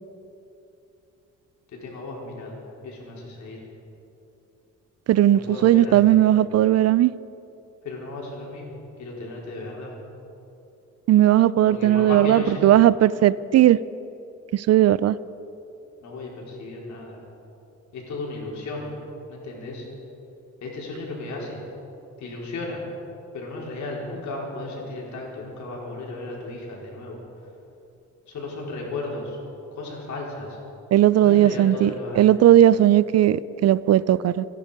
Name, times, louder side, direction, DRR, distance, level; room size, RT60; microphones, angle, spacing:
voice 1, 1.7-3.6 5.3-6.2 7.8-8.6 9.0-9.9 11.7-12.7 16.0-17.2 17.9-18.9 19.3-19.9 20.6-21.6 22.2-22.8 23.3-27.2 28.3-29.4 29.8-30.6 31.2-32.4, left 2 dB, 70° left, -2 dB, 4.6 m, -34 dB
voice 2, 5.1-7.1 11.1-13.8 14.5-15.2 30.9-31.9 32.2-34.4, right 12 dB, 55° right, 19 dB, 0.5 m, -17 dB
25.5 x 11.0 x 5.2 m, 2.9 s
cardioid pair, 90°, 30 cm